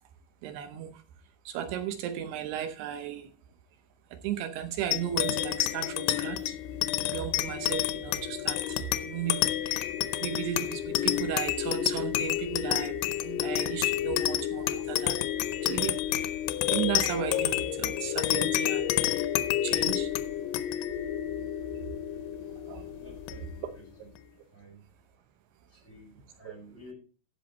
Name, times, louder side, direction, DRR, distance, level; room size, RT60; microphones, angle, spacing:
voice 1, 0.4-1.0 1.5-3.3 4.1-6.6 7.1-9.9 10.2-15.2 15.6-16.3 16.7-18.9 19.6-20.1 22.7-22.8 26.4-26.5, right 10 dB, 80° right, 9 dB, 2.9 m, -35 dB
sound 1, 4.9-23.8, left 12 dB, 90° left, 2.9 m, -29 dB
voice 2, 23.0-23.8 24.5-24.8 25.7-26.9, equal, 15° left, 0 dB, 5.0 m, -51 dB
15.0 x 5.9 x 4.2 m, 0.37 s
omnidirectional pair, 4.7 m